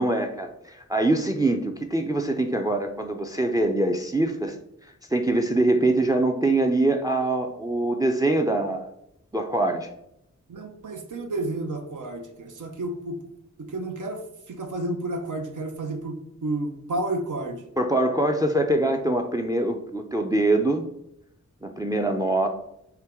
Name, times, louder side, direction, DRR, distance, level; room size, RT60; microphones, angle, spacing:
voice 1, 0.0-4.6 5.1-8.9 9.3-9.9 17.8-20.9 21.6-22.5, right 2 dB, 10° right, 5 dB, 0.4 m, -23 dB
voice 2, 10.5-13.2 13.6-17.6, right 2 dB, 80° right, 4 dB, 0.7 m, -31 dB
4.5 x 2.9 x 3.5 m, 0.78 s
wide cardioid pair, 90°, 30 cm